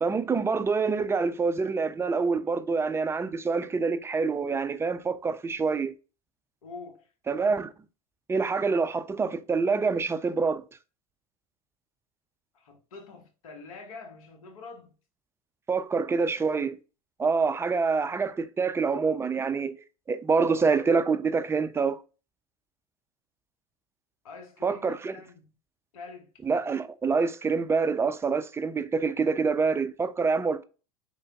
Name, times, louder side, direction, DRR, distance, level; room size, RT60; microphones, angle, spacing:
voice 1, 0.0-5.9 7.3-7.7 8.3-10.6 15.7-16.8 17.2-19.8 20.1-22.0 24.6-25.1 26.4-30.6, right 4 dB, 15° right, 0.4 m, -26 dB
voice 2, 6.6-7.1 12.5-14.9 24.2-25.5 25.9-26.3, left 4 dB, 80° left, 1.0 m, -45 dB
3.8 x 3.2 x 2.2 m
hypercardioid pair, 85°, 18 cm